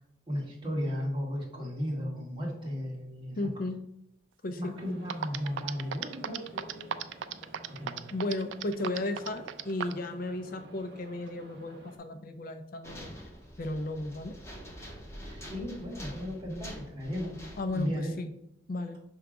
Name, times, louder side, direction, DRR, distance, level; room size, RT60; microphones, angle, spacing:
voice 1, 0.3-3.4 4.6-6.9 7.8-8.0 15.3-17.3 17.7-18.1, equal, 25° right, -3 dB, 1.6 m, -35 dB
voice 2, 3.4-3.8 4.4-4.7 8.1-13.1 13.6-14.4 17.6-18.3 18.7-19.0, left 2 dB, 50° left, 8 dB, 0.5 m, -34 dB
sound 1, 4.7-12.0, right 1 dB, 60° right, 1.1 m, -52 dB
sound 2, 4.8-4.9 5.1-10.1, right 9 dB, 80° right, 0.4 m, -35 dB
sound 3, 12.8-18.0, equal, 15° left, 1.2 m, -46 dB
6.1 x 3.4 x 5.0 m, 0.79 s
head